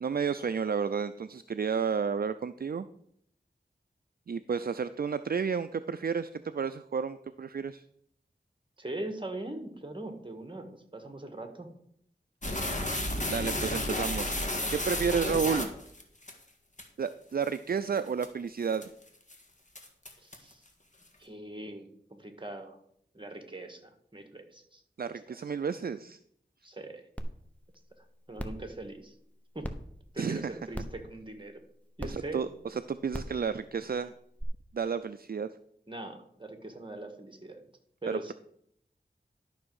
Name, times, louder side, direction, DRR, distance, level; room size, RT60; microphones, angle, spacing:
voice 1, 0.0-2.9 4.3-7.8 13.3-14.3 14.7-15.7 17.0-18.9 25.0-26.2 30.2-30.5 32.0-34.1 34.7-35.5 38.1-38.2, right 6 dB, 55° right, 12 dB, 0.4 m, -31 dB
voice 2, 8.8-11.7 20.2-20.6 21.2-22.8 23.1-24.8 25.1-25.4 26.6-27.1 28.0-29.1 29.5-29.7 30.1-31.6 32.0-32.4 35.9-37.6 38.0-38.3, right 2 dB, 25° right, 5 dB, 1.6 m, -41 dB
sound 1, 12.4-16.3 16.8-16.9 17.4-17.6 18.0-18.3 18.7-19.0 19.3-19.4 19.8-20.5, left 1 dB, 40° left, 1.7 m, -32 dB
sound 2, 27.2-27.3 27.7-27.8 28.4-28.6 29.6-29.7 30.7-31.0 32.0-32.1 33.1-33.3 34.4-34.5, equal, 10° left, 1.0 m, -36 dB
12.0 x 6.1 x 4.8 m, 0.70 s
wide cardioid pair, 50°, 18 cm